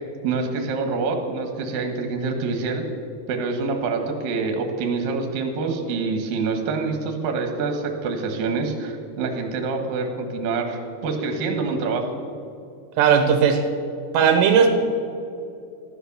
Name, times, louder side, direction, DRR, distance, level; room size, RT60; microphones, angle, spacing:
voice 1, 0.2-2.9 3.3-12.1, right 4 dB, 65° right, 3 dB, 3.0 m, -26 dB
voice 2, 13.0-13.6 14.1-14.7, right 7 dB, 80° right, 5 dB, 3.2 m, -16 dB
14.5 x 11.5 x 7.0 m, 2.6 s
omnidirectional pair, 4.9 m